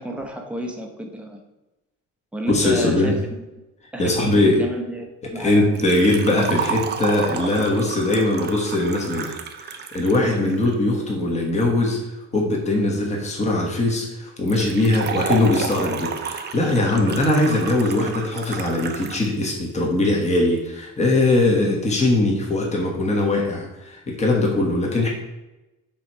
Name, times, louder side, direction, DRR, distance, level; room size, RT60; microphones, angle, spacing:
voice 1, 0.0-1.4 2.3-3.2 3.9-5.8, right 1 dB, 5° right, 1 dB, 0.8 m, -31 dB
voice 2, 2.5-3.1 4.0-4.6 5.3-12.0 12.3-25.1, left 2 dB, 20° left, -1 dB, 1.2 m, -21 dB
Liquid, 5.7-10.7 14.5-19.3 19.6-19.7 20.6-20.7, right 6 dB, 35° right, 0.5 m, -31 dB
7.1 x 3.0 x 4.6 m, 1.0 s
cardioid pair, 160°, 32 cm